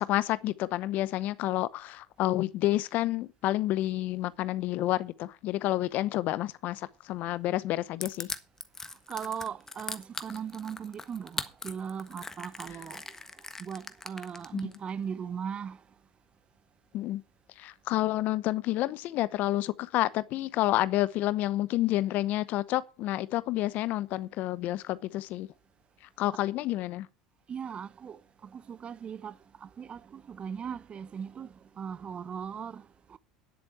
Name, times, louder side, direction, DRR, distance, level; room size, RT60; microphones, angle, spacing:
voice 1, 0.0-8.3 14.5-14.7 16.9-17.2 17.6-25.5 26.2-27.1, left 15 dB, 55° left, 0.8 m, -29 dB
Crushing, 8.0-14.8, left 3 dB, 15° left, 1.5 m, -39 dB
voice 2, 9.1-13.0 13.6-15.8 27.5-33.2, right 7 dB, 35° right, 0.7 m, -39 dB
10.5 x 7.9 x 5.8 m
hypercardioid pair, 80°, 3 cm